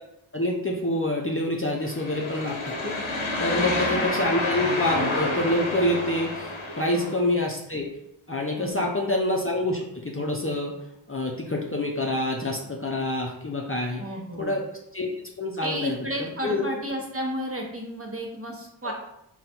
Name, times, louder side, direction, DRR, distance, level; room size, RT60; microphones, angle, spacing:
voice 1, 0.3-7.9 8.3-10.7 11.1-14.0 14.4-14.6 14.9-15.1 15.4-16.0 16.4-16.6 18.8-18.9, left 1 dB, 30° left, -1 dB, 0.6 m, -27 dB
sound 1, 1.8-7.2, left 2 dB, 80° left, 0.8 m, -29 dB
voice 2, 14.0-14.5 15.6-18.9, equal, 30° right, -1 dB, 0.9 m, -32 dB
3.8 x 2.2 x 4.3 m, 0.80 s
wide cardioid pair, 45°, 48 cm